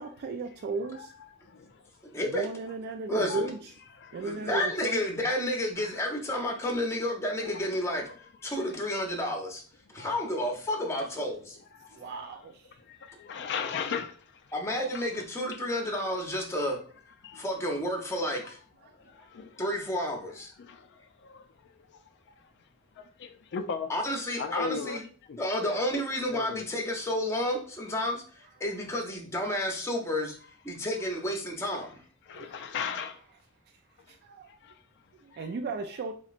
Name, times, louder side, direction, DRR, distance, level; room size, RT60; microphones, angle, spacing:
voice 1, 0.0-1.1 2.2-3.7 4.1-5.1 11.9-12.8 16.4-16.5 18.9-19.0 19.2-19.3 32.3-32.7 33.7-33.8 34.1-34.5 35.1-36.1, right 3 dB, 50° right, 0.3 m, -36 dB
voice 2, 0.9-2.2 3.3-3.5 3.9-4.3 5.8-6.4 7.4-7.7 8.0-8.7 9.9-10.4 11.7-12.4 12.8-14.6 14.9-15.2 15.5-15.6 17.2-17.7 18.4-18.5 18.8-19.6 20.1-20.3 20.5-23.9 24.4-25.4 25.7-25.8 26.3-26.6 30.7-31.2 32.2-33.3 34.0-34.2 34.4-35.5, left 6 dB, 55° left, 0.4 m, -40 dB
voice 3, 2.0-2.5 3.1-3.4 4.2-8.0 8.4-9.6 9.9-11.6 14.5-16.8 17.3-18.6 19.6-20.5 23.9-25.0 25.4-30.3 30.6-32.0, left 1 dB, 10° left, 0.7 m, -31 dB
4.2 x 3.0 x 2.4 m
head